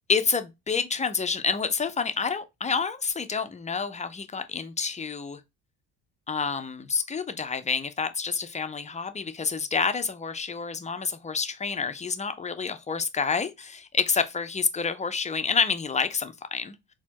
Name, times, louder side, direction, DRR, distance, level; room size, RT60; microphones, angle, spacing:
voice 1, 0.1-5.4 6.3-16.9, left 5 dB, 15° left, 0.5 m, -28 dB
4.2 x 2.2 x 2.8 m
hypercardioid pair, 60°, 47 cm